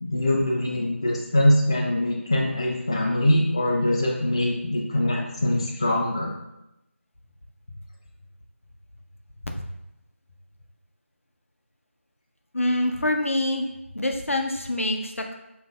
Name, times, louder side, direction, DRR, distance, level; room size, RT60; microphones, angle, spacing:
voice 1, 0.0-6.3, left 1 dB, 25° left, -2 dB, 0.4 m, -23 dB
voice 2, 12.5-13.7 13.9-15.4, left 1 dB, 80° left, 3 dB, 0.7 m, -25 dB
6.1 x 2.6 x 2.3 m, 0.90 s
figure-of-eight pair, 165°, 7 cm